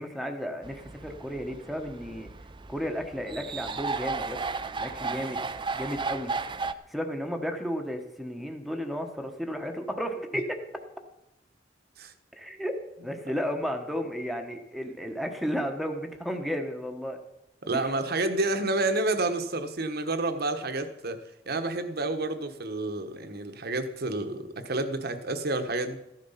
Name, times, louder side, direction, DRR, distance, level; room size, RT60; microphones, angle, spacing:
voice 1, 0.0-2.3 2.7-4.4 4.7-5.4 5.7-6.3 6.9-10.6 12.4-17.2 17.7-18.0, equal, ahead, 4 dB, 1.2 m, -33 dB
sound 1, 0.6-6.7, right 4 dB, 25° right, 0.6 m, -34 dB
voice 2, 17.6-21.2 21.5-26.0, right 2 dB, 55° right, 9 dB, 1.3 m, -29 dB
14.5 x 11.0 x 5.7 m, 0.88 s
head